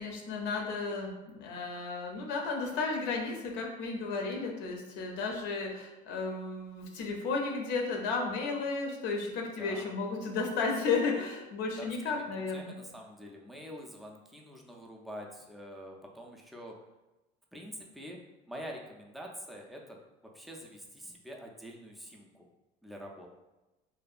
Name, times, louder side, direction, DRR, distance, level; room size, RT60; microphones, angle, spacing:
voice 1, 0.0-12.8, left 4 dB, 75° left, 1 dB, 0.5 m, -33 dB
voice 2, 9.6-10.0 11.8-12.3 12.5-16.8 17.5-18.2 18.5-20.0 20.3-22.5 22.8-23.3, equal, ahead, -1 dB, 0.3 m, -46 dB
2.6 x 2.2 x 2.4 m, 1.0 s
cardioid pair, 115°, 18 cm